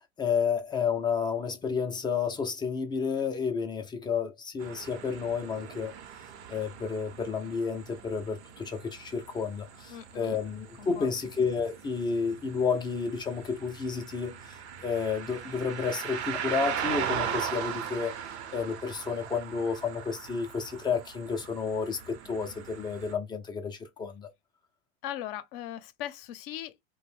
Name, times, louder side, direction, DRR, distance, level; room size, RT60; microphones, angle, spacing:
voice 1, 0.2-5.9 6.5-18.1 18.5-24.3, left 5 dB, 15° left, 0.3 m, -31 dB
sound 1, 4.6-23.1, right 8 dB, 85° right, 0.8 m, -39 dB
voice 2, 9.9-10.4 10.8-11.1 25.0-26.7, left 12 dB, 55° left, 0.6 m, -39 dB
2.5 x 2.1 x 3.2 m
supercardioid pair, 125°, 33 cm